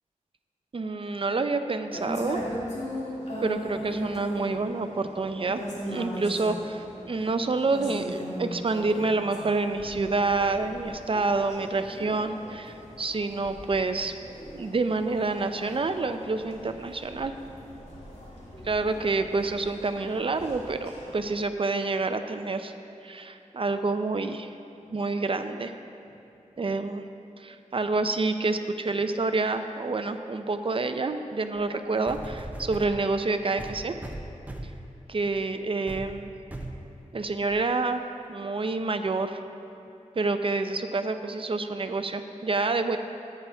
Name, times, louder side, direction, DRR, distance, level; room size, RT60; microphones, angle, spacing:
voice 1, 0.7-2.4 3.4-14.1 14.5-17.3 18.6-22.7 23.0-24.5 24.9-25.7 26.6-27.0 27.4-33.9 35.1-36.3 37.1-38.0 38.3-39.4 40.2-43.0, right 3 dB, 45° right, 8 dB, 0.6 m, -28 dB
sound 1, 1.9-21.4, equal, 55° left, 2.5 m, -39 dB
sound 2, 31.6-31.7 32.1-33.0 33.6-34.8 35.3-35.5 35.9-36.1 36.5-36.8 37.5-37.6, right 1 dB, 10° right, 0.8 m, -38 dB
14.0 x 9.2 x 3.5 m, 3.0 s
wide cardioid pair, 105°, 13 cm